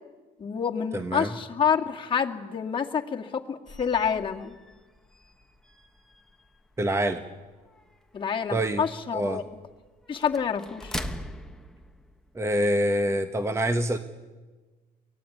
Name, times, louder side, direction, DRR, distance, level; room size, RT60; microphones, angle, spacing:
voice 1, 0.4-4.6 8.1-9.4 10.1-10.9, left 7 dB, 30° left, 1 dB, 2.1 m, -28 dB
voice 2, 0.9-1.4 6.8-7.2 8.5-8.9 9.1-9.4 12.3-14.0, right 1 dB, 15° right, 9 dB, 1.2 m, -26 dB
sound 1, 3.7-12.6, left 1 dB, 5° left, 1.3 m, -43 dB
23.0 x 17.5 x 9.5 m, 1.3 s
cardioid pair, 110°, 17 cm